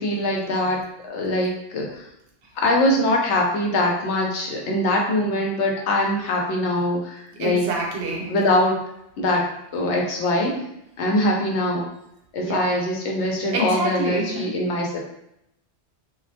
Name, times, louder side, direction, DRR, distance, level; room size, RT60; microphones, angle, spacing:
voice 1, 0.0-2.1 2.6-7.6 8.3-8.8 9.2-9.4 9.7-11.9 12.3-15.0, left 1 dB, 85° left, 0 dB, 0.9 m, -23 dB
voice 2, 7.4-8.3 12.4-12.6 13.5-14.5, right 2 dB, 80° right, -1 dB, 0.9 m, -26 dB
2.2 x 2.1 x 2.7 m, 0.80 s
omnidirectional pair, 1.1 m